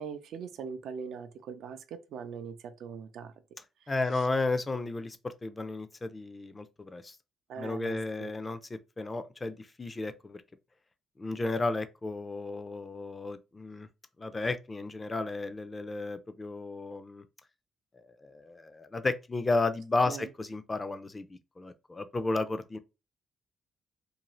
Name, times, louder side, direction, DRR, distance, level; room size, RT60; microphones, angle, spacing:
voice 1, 0.0-3.3 3.8-4.3 7.5-8.4 20.0-20.3, right 6 dB, 80° right, 0.4 m, -42 dB
voice 2, 3.9-7.2 7.6-10.4 11.2-13.9 14.2-17.2 17.9-22.8, left 3 dB, 20° left, 0.3 m, -33 dB
2.6 x 2.3 x 3.0 m
cardioid pair, 120°, 0 cm